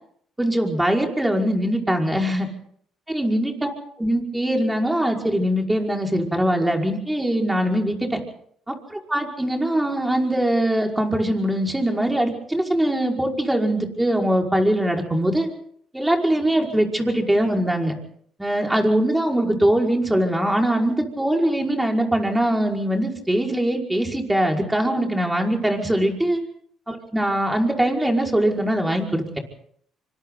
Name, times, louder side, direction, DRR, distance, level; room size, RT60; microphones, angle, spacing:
voice 1, 0.4-2.5 3.1-3.7 4.0-8.2 8.7-15.5 15.9-17.9 18.4-26.4 26.9-29.2, right 1 dB, 10° right, 1 dB, 5.4 m, -22 dB
27.0 x 24.5 x 4.0 m, 0.64 s
supercardioid pair, 70°, 0 cm